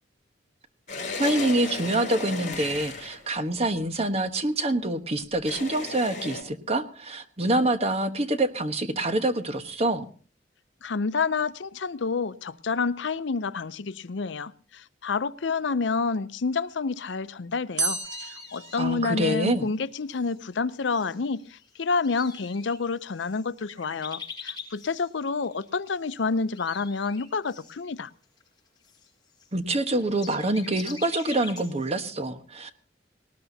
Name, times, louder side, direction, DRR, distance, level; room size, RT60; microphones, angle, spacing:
sound 1, 0.9-3.3 5.4-6.4, left 3 dB, 40° left, 4.9 m, -34 dB
voice 1, 1.2-10.1 18.8-19.7 29.5-32.7, right 1 dB, 35° right, 1.2 m, -26 dB
voice 2, 10.8-28.1, left 4 dB, 75° left, 0.6 m, -29 dB
sound 2, 17.8-19.7, right 4 dB, 65° right, 1.8 m, -32 dB
sound 3, 18.0-19.3 19.9-20.4 20.9-26.2 26.4-32.0, left 6 dB, 20° left, 5.8 m, -44 dB
19.5 x 19.0 x 2.8 m
head